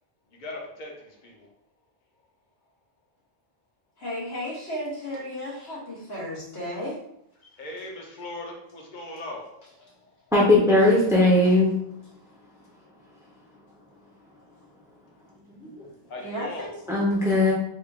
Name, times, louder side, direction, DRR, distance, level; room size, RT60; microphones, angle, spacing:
voice 1, 0.3-1.5 7.6-9.9 16.1-16.7, left 2 dB, 50° left, 0 dB, 0.9 m, -39 dB
voice 2, 4.0-6.9 7.4-7.5 16.2-16.7, equal, 75° left, -5 dB, 1.5 m, -34 dB
voice 3, 10.3-11.7 15.5-15.9 16.9-17.5, left 1 dB, 5° right, -4 dB, 0.7 m, -19 dB
3.6 x 2.5 x 3.6 m, 0.78 s
omnidirectional pair, 1.1 m